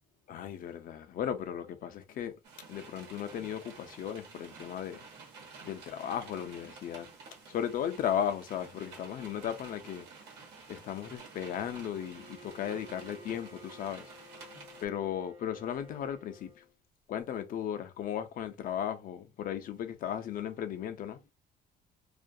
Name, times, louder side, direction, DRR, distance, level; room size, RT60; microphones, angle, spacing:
voice 1, 0.3-2.3 2.7-5.0 5.6-7.1 7.5-10.1 10.7-14.0 14.8-16.6 17.1-21.2, left 9 dB, 55° left, 0.5 m, -36 dB
sound 1, 2.4-14.9, right 4 dB, 90° right, 1.1 m, -51 dB
Bowed string instrument, 12.0-16.7, equal, 35° right, 0.8 m, -53 dB
2.4 x 2.2 x 2.6 m
cardioid pair, 110°, 17 cm